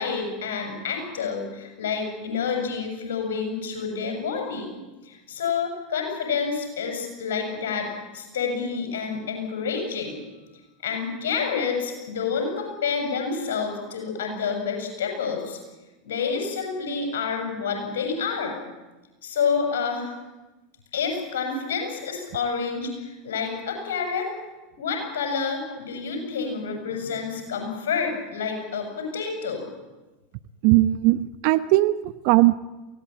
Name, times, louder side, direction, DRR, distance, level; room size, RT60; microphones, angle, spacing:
voice 1, 0.0-4.8 5.0-10.2 10.8-15.6 16.0-18.6 19.2-20.1 20.9-24.3 24.8-29.6, left 5 dB, 75° left, 3 dB, 7.0 m, -28 dB
voice 2, 30.6-32.6, right 17 dB, 60° right, 13 dB, 0.9 m, -19 dB
23.5 x 17.5 x 8.9 m, 1.1 s
hypercardioid pair, 85°, 0 cm